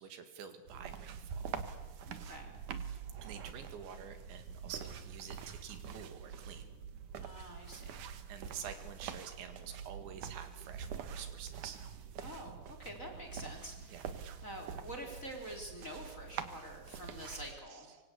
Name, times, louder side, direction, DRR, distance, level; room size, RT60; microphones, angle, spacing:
voice 1, 0.0-1.5 3.2-6.7 8.3-11.8 13.9-14.1 17.7-17.8, right 8 dB, 80° right, 8 dB, 4.4 m, -48 dB
sound 1, 0.7-17.5, right 7 dB, 60° right, 2.4 m, -45 dB
voice 2, 2.1-2.5 7.2-8.0 12.2-18.0, equal, 20° left, 3 dB, 3.7 m, -47 dB
25.5 x 25.0 x 8.4 m, 1.1 s
omnidirectional pair, 5.1 m